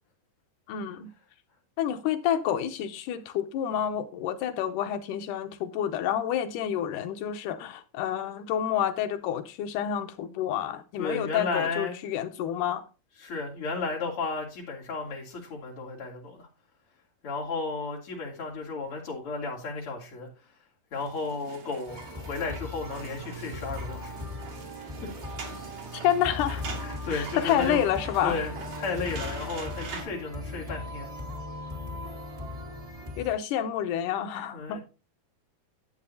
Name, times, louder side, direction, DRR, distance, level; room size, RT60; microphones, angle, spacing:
voice 1, 0.7-1.1 1.8-12.8 25.9-26.7 27.1-28.4 33.2-34.8, left 10 dB, 85° left, 2.3 m, -29 dB
voice 2, 11.0-11.9 13.2-16.5 17.2-20.3 20.9-24.1 26.8-27.9 28.2-28.5 28.8-31.1 34.5-34.8, left 4 dB, 45° left, 3.5 m, -33 dB
sound 1, 20.9-30.0, right 5 dB, 85° right, 3.9 m, -43 dB
The Nightwalker, 21.9-33.3, left 2 dB, 20° right, 0.9 m, -38 dB
11.0 x 8.4 x 2.7 m
omnidirectional pair, 3.7 m